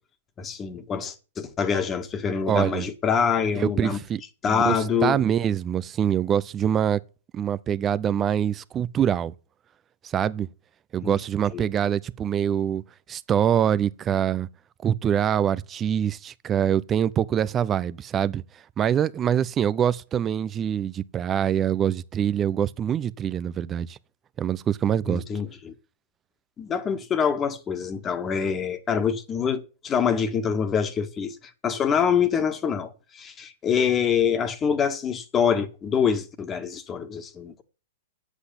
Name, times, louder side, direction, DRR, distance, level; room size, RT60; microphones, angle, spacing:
voice 1, 0.4-4.0 4.4-5.2 11.0-11.1 11.5-11.7 25.1-25.7 26.6-31.4 31.6-37.6, left 7 dB, 25° left, 1.8 m, -25 dB
voice 2, 2.5-2.9 3.5-4.2 4.5-7.0 7.3-9.3 10.0-10.5 10.9-12.8 13.1-14.5 14.8-18.4 18.8-24.0 24.4-25.2, right 9 dB, 25° right, 0.7 m, -24 dB
9.7 x 8.2 x 7.1 m
hypercardioid pair, 110°, 0 cm